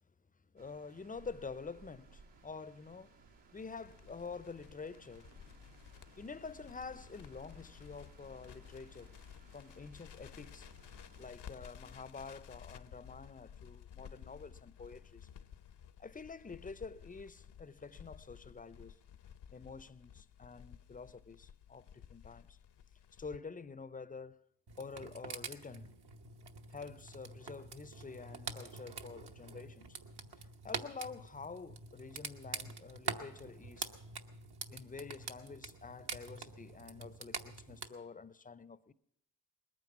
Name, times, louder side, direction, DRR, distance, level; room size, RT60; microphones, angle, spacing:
voice 1, 0.5-3.2 3.5-5.3 6.2-9.1 9.5-10.7 11.2-15.3 16.0-19.0 19.5-22.6 23.2-24.4 24.8-26.0 26.7-30.0 30.4-33.9 34.7-38.9, left 4 dB, 20° left, 0.5 m, -48 dB
sound 1, 0.6-11.3, right 4 dB, 80° right, 2.2 m, -62 dB
Crackle, 3.5-23.4, left 8 dB, 75° left, 0.8 m, -55 dB
sound 2, 24.7-37.9, right 5 dB, 65° right, 1.2 m, -46 dB
20.0 x 9.2 x 7.2 m
cardioid pair, 80°, 42 cm